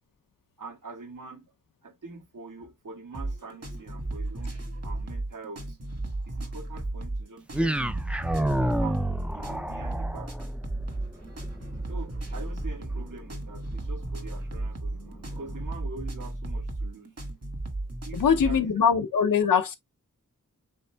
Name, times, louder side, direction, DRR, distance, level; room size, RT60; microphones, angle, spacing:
voice 1, 0.6-1.5 1.8-5.8 6.3-7.8 8.4-9.0 9.3-10.3 11.9-17.1 18.0-18.7, right 4 dB, 75° right, 1.5 m, -44 dB
sound 1, 3.1-18.6, right 2 dB, 50° right, 1.6 m, -34 dB
sound 2, 7.5-15.7, right 1 dB, 5° right, 0.4 m, -32 dB
voice 2, 18.1-19.8, left 7 dB, 80° left, 0.6 m, -22 dB
5.4 x 4.1 x 2.2 m
wide cardioid pair, 100°, 32 cm